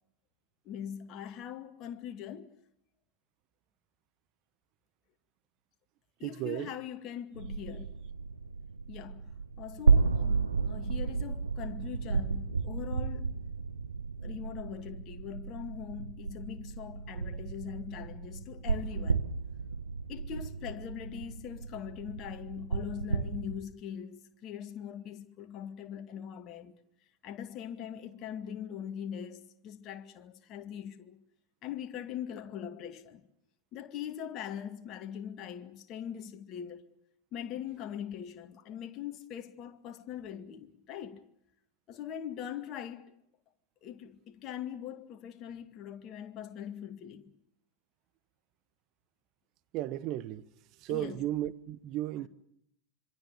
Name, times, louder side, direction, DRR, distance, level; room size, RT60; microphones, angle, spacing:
voice 1, 0.6-2.5 6.2-7.9 8.9-13.4 14.2-19.3 20.1-26.8 27.2-31.2 31.6-33.2 33.7-36.9 37.3-41.3 41.9-43.1 43.8-47.3 50.9-51.3, left 9 dB, 35° left, 2.2 m, -42 dB
voice 2, 6.2-6.7 49.7-50.4 50.8-52.3, right 14 dB, 40° right, 1.2 m, -34 dB
sound 1, 7.3-23.6, right 4 dB, 75° right, 1.4 m, -33 dB
26.0 x 24.5 x 6.8 m
figure-of-eight pair, 90°, 0 cm